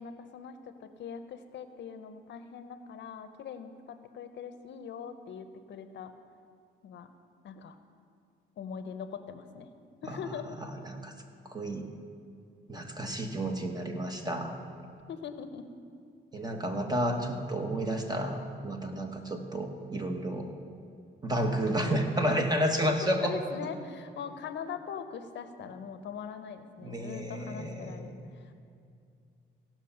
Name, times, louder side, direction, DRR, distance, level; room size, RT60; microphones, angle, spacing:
voice 1, 0.0-6.1 6.8-7.1 7.4-7.8 8.6-9.7 10.0-10.6 15.1-15.7 23.2-28.5, left 7 dB, 65° left, 9 dB, 0.7 m, -42 dB
voice 2, 10.0-11.1 11.4-11.9 12.7-14.5 16.3-20.5 21.2-23.4 26.8-28.1, equal, 20° right, 4 dB, 1.3 m, -31 dB
17.0 x 5.9 x 5.6 m, 2.4 s
cardioid pair, 90°, 20 cm